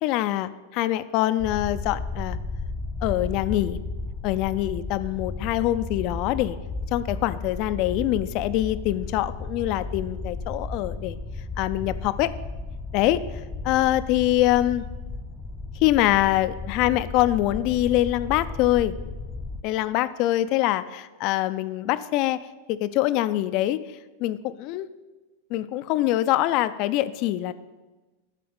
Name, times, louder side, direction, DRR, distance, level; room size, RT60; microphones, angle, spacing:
voice 1, 0.0-2.4 3.0-3.8 4.2-6.6 6.9-11.2 11.6-12.3 12.9-13.2 13.6-14.8 15.8-18.9 19.6-22.4 22.7-23.8 24.2-24.9 25.5-27.5, left 14 dB, 50° left, 14 dB, 0.5 m, -24 dB
sound 1, 1.4-19.6, left 3 dB, 15° left, 0.7 m, -34 dB
11.5 x 4.2 x 7.9 m, 1.2 s
hypercardioid pair, 110°, 0 cm